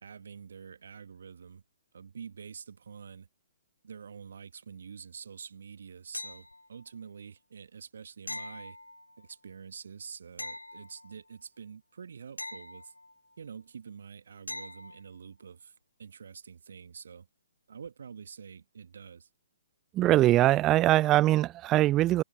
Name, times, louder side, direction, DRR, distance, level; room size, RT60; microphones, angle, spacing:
voice 1, 0.0-1.6 1.9-3.3 3.8-8.8 9.2-12.9 13.4-15.7 16.0-17.3 17.7-19.3, right 6 dB, 60° right, 1.6 m, -47 dB
sound 1, 6.1-6.9 8.3-9.3 10.4-11.4 12.4-13.4 14.5-15.1 17.8-17.9, left 2 dB, 85° left, 3.1 m, -42 dB
voice 2, 19.9-22.2, right 15 dB, 20° right, 0.3 m, -22 dB
figure-of-eight pair, 125°, 0 cm